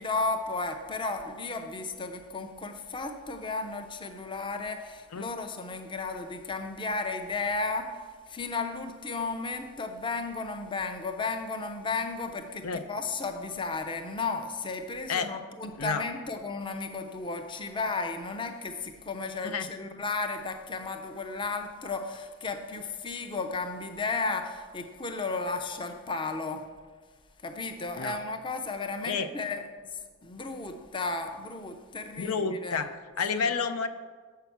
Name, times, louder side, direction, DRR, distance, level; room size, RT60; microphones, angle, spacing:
voice 1, 0.0-26.6 27.4-32.9 33.3-33.5, left 3 dB, 20° left, 6 dB, 0.5 m, -34 dB
voice 2, 32.2-33.9, left 5 dB, 85° left, 10 dB, 0.5 m, -30 dB
6.9 x 5.7 x 7.1 m, 1.5 s
head